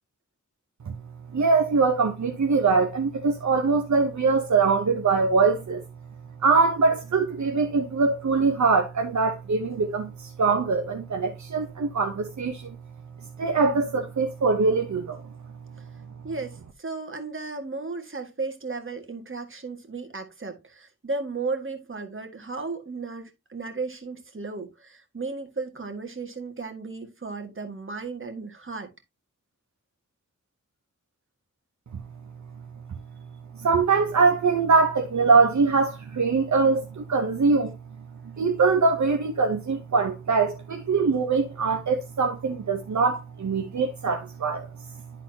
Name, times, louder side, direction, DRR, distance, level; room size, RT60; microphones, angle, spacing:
voice 1, 1.3-5.8 6.4-12.8 13.4-15.2 33.5-37.8 38.4-44.7, right 4 dB, 60° right, 0.9 m, -23 dB
voice 2, 16.2-28.9, right 3 dB, 40° right, 1.8 m, -35 dB
11.5 x 4.0 x 2.8 m
wide cardioid pair, 70°, 32 cm